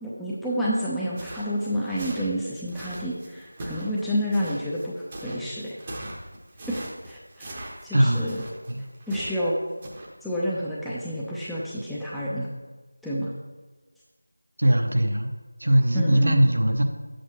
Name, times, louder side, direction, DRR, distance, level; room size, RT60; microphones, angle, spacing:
voice 1, 0.0-6.1 6.7-6.8 7.1-7.6 7.8-8.4 9.1-9.6 10.2-12.5 13.0-13.3 15.9-16.5, equal, ahead, -9 dB, 0.6 m, -29 dB
sound 1, 1.1-9.5 9.8-10.1, right 1 dB, 20° right, 0.9 m, -40 dB
voice 2, 7.9-8.3 8.7-8.8 14.6-15.3 15.6-16.8, right 1 dB, 60° right, 4 dB, 0.9 m, -20 dB
8.9 x 7.6 x 3.0 m, 1.3 s
figure-of-eight pair, 170°, 0 cm